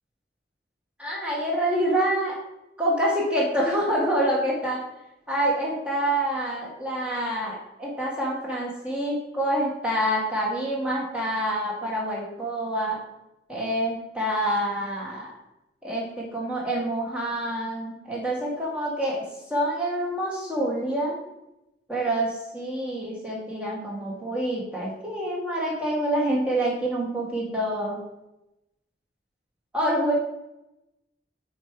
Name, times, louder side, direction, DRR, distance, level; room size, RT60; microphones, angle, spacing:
voice 1, 1.0-2.4 2.8-4.8 5.3-13.0 13.5-15.3 15.8-21.1 21.9-28.0 29.7-30.1, right 1 dB, 5° right, -5 dB, 1.7 m, -27 dB
5.7 x 4.9 x 4.6 m, 0.92 s
head